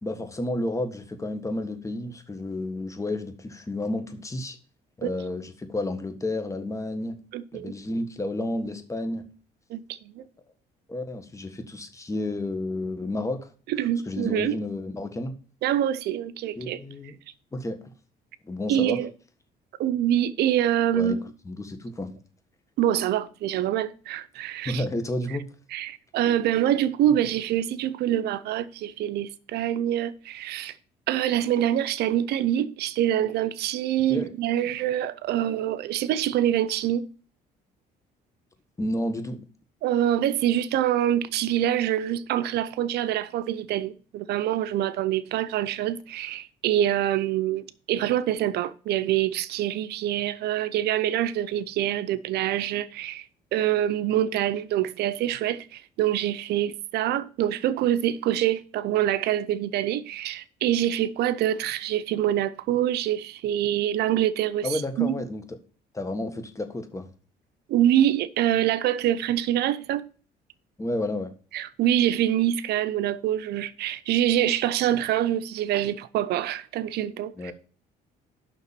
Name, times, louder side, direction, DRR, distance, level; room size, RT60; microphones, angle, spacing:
voice 1, 0.0-4.6 5.0-7.2 7.5-9.2 10.9-13.5 14.1-15.3 16.5-17.2 17.5-17.8 18.4-19.0 20.9-21.2 21.4-22.2 24.6-25.5 34.1-34.3 38.8-39.4 64.6-65.4 65.9-67.1 70.8-71.3 77.4-77.5, left 1 dB, 20° left, 1.6 m, -31 dB
voice 2, 7.3-7.7 9.7-10.2 13.7-14.6 15.6-16.8 18.7-19.1 19.8-21.2 22.8-24.8 25.3-25.4 25.7-30.8 31.1-37.0 39.8-53.3 53.5-65.1 67.7-70.1 71.5-77.5, right 11 dB, 75° right, 0.7 m, -25 dB
7.0 x 6.0 x 7.3 m
cardioid pair, 110°, 17 cm